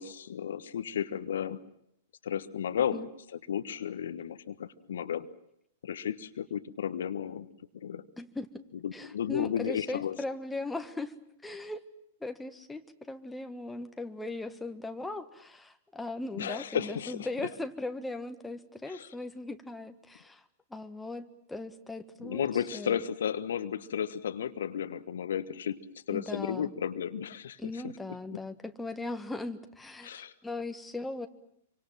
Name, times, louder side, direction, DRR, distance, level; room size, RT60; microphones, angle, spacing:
voice 1, 0.0-1.6 2.2-3.1 3.5-5.3 5.8-7.5 7.7-8.0 8.8-10.2 16.3-17.3 18.9-19.1 22.2-27.9 28.3-28.4 30.0-30.3, left 8 dB, 65° left, 11 dB, 1.3 m, -33 dB
voice 2, 8.2-8.6 8.9-11.1 11.4-11.8 12.2-20.5 20.7-23.0 26.1-26.7 27.6-31.3, left 2 dB, 5° left, 7 dB, 1.7 m, -38 dB
27.0 x 25.0 x 7.5 m, 0.74 s
figure-of-eight pair, 105°, 0 cm